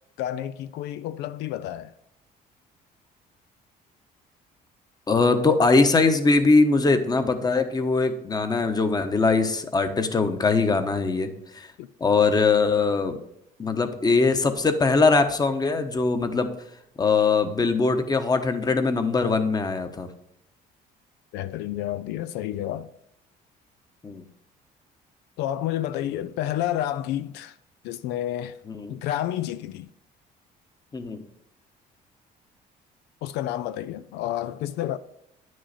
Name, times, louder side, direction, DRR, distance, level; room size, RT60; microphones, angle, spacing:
voice 1, 0.2-1.9 11.8-11.9 21.3-22.9 25.4-27.6 27.8-28.6 28.9-29.9 33.2-35.0, left 12 dB, 90° left, 0.4 m, -30 dB
voice 2, 5.1-11.7 12.0-13.2 13.6-16.5 17.0-20.1 24.0-24.2 28.7-28.9 30.9-31.2, left 4 dB, 25° left, 1.0 m, -21 dB
9.6 x 6.3 x 4.2 m
cardioid pair, 110°, 17 cm